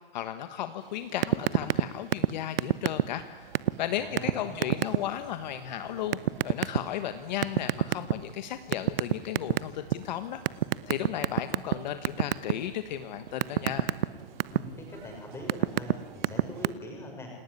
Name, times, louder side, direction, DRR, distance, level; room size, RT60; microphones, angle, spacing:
voice 1, 0.1-3.5 3.8-6.2 6.4-10.4 10.9-13.9, left 11 dB, 50° left, 10 dB, 1.5 m, -35 dB
sound 1, 1.2-1.8 2.1-2.3 2.6-3.2 3.5-3.7 4.2-4.3 4.6-5.0 6.1-6.8 7.4-8.3 8.7-9.9 10.5-11.7 12.0-12.5 12.9-14.6 15.2-15.9 16.2-16.7, right 12 dB, 70° right, 1.0 m, -24 dB
sound 2, 3.4-16.7, right 7 dB, 55° right, 3.9 m, -52 dB
voice 2, 4.0-4.7 14.5-17.3, left 1 dB, 10° left, 1 dB, 6.6 m, -42 dB
28.5 x 19.5 x 9.9 m, 1.5 s
hypercardioid pair, 165°, 29 cm